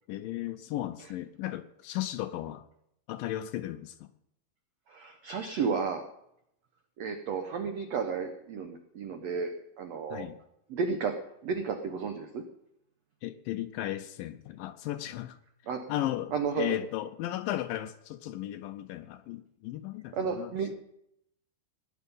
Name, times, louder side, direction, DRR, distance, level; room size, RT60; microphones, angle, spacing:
voice 1, 0.1-2.6 3.1-4.1 10.1-10.4 13.2-15.4 15.9-20.5, left 13 dB, 80° left, 10 dB, 2.1 m, -35 dB
voice 2, 4.9-6.0 7.0-10.3 10.7-12.4 15.7-15.9 16.3-16.7 20.1-20.8, right 5 dB, 85° right, 5 dB, 1.4 m, -33 dB
17.5 x 9.9 x 5.5 m, 0.77 s
omnidirectional pair, 4.5 m